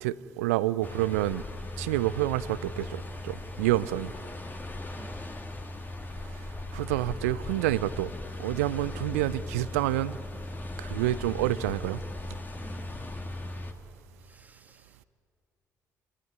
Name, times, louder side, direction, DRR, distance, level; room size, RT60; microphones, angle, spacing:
voice 1, 0.0-1.4 1.8-4.1 6.7-8.1 8.4-10.2 10.8-12.0, right 16 dB, 75° right, 19 dB, 0.5 m, -28 dB
sound 1, 0.8-13.7, left 2 dB, 25° left, 2.3 m, -38 dB
voice 2, 12.6-13.3 14.2-15.0, right 2 dB, 20° right, 9 dB, 1.7 m, -51 dB
26.0 x 18.0 x 9.3 m, 2.6 s
figure-of-eight pair, 45°, 8 cm